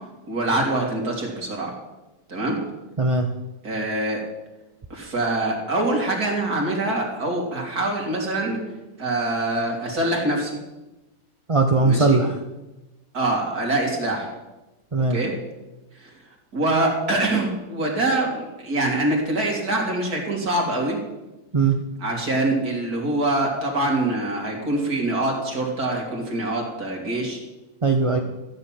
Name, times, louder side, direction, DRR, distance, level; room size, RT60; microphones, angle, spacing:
voice 1, 0.3-1.7 2.3-2.6 3.6-4.2 4.9-8.6 9.0-10.6 11.8-12.2 13.1-14.3 15.1-15.3 16.5-21.0 22.0-27.4, right 2 dB, 60° right, 0 dB, 3.4 m, -24 dB
voice 2, 3.0-3.3 11.5-12.4 14.9-15.2 21.5-21.8 27.8-28.2, right 3 dB, 30° right, 4 dB, 0.6 m, -19 dB
14.0 x 6.9 x 9.1 m, 1.1 s
omnidirectional pair, 1.8 m